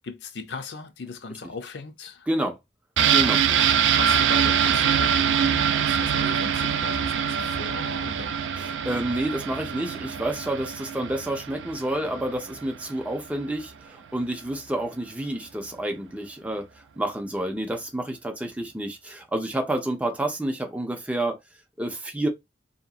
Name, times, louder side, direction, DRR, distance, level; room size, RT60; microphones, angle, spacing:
voice 1, 0.0-2.3 3.3-3.4 3.9-8.6, left 4 dB, 70° left, 0.5 m, -38 dB
voice 2, 2.3-2.6 3.1-3.4 8.6-16.7 17.0-21.4 21.8-22.3, right 1 dB, 10° right, 0.6 m, -29 dB
sound 1, 3.0-12.6 12.9-13.0, right 8 dB, 85° right, 0.3 m, -24 dB
2.8 x 2.5 x 2.3 m
head